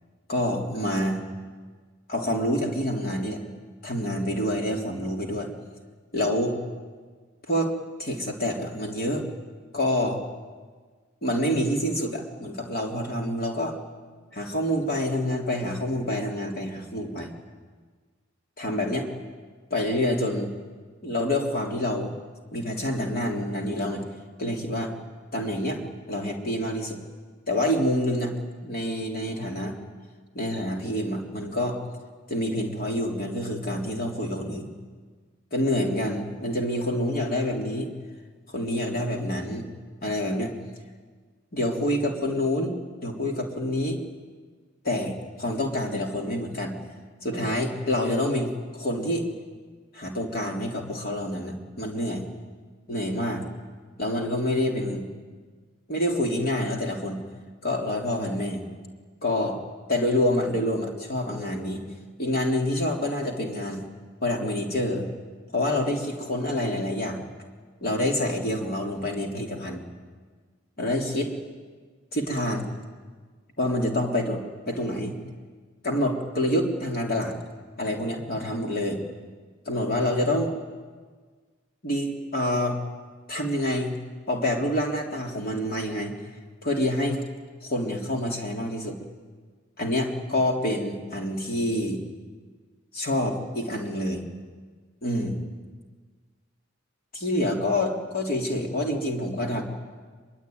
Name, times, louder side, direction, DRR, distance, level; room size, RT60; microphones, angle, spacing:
voice 1, 0.3-1.2 2.1-3.4 3.8-5.5 6.1-6.5 7.5-7.7 8.0-9.2 9.7-10.2 11.2-13.8 14.3-17.3 18.6-19.1 19.7-20.6 21.0-22.1 22.5-24.0 24.4-24.9 25.3-25.8 26.1-27.0 27.5-28.3 28.6-29.8 30.3-31.8 32.3-34.7 35.5-37.9 38.5-39.7 40.0-40.5 41.5-42.7 43.0-44.0 44.8-46.8 47.2-48.5 48.8-49.3 49.9-52.3 52.9-53.5 54.0-55.1 55.9-57.2 57.6-58.6 59.2-59.6 59.9-61.8 62.2-63.8 64.2-65.1 65.5-67.2 67.8-69.8 70.8-71.3 72.1-72.7 73.6-75.2 75.8-77.4 77.8-79.0 79.7-80.5 81.8-82.8 83.3-84.0 84.3-86.1 86.6-87.2 87.6-89.0 89.8-92.0 92.9-94.2 95.0-95.4 97.1-99.6, left 1 dB, 45° left, 1 dB, 3.7 m, -27 dB
24.0 x 22.5 x 9.6 m, 1.5 s
head